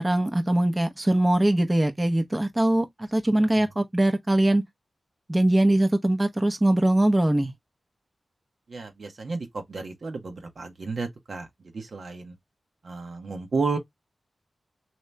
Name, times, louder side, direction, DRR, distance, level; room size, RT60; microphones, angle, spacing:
voice 1, 0.0-4.6 5.3-7.5, right 1 dB, 25° right, 0.7 m, -22 dB
voice 2, 8.7-11.5 11.7-12.3 12.8-13.8, right 4 dB, 70° right, 1.0 m, -32 dB
3.0 x 2.8 x 3.2 m
cardioid pair, 45°, 0 cm